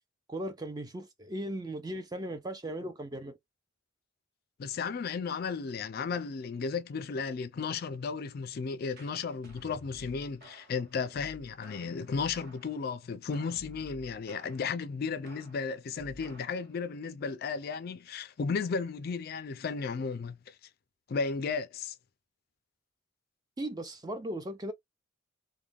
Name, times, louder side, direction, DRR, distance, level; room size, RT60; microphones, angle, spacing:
voice 1, 0.3-3.4 23.6-24.7, right 1 dB, 20° right, 0.4 m, -37 dB
voice 2, 4.6-20.5 21.1-22.0, left 5 dB, 50° left, 0.4 m, -34 dB
sound 1, 8.9-12.9 13.3-14.8 15.2-16.7, equal, 45° right, 1.0 m, -53 dB
2.3 x 2.2 x 3.3 m
head